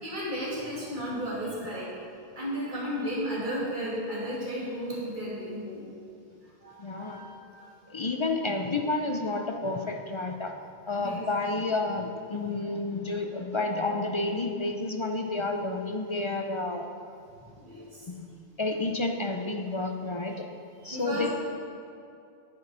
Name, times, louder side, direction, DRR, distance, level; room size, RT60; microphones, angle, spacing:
voice 1, 0.0-1.9 2.4-5.8 6.6-7.7 11.0-11.2 17.6-18.1 20.8-21.3, equal, 45° right, -8 dB, 2.5 m, -34 dB
voice 2, 6.8-7.2 7.9-10.5 10.9-16.9 18.1-18.3 18.6-20.5 20.8-21.3, left 2 dB, 40° left, 4 dB, 0.5 m, -30 dB
9.1 x 6.7 x 5.5 m, 2.5 s
omnidirectional pair, 1.1 m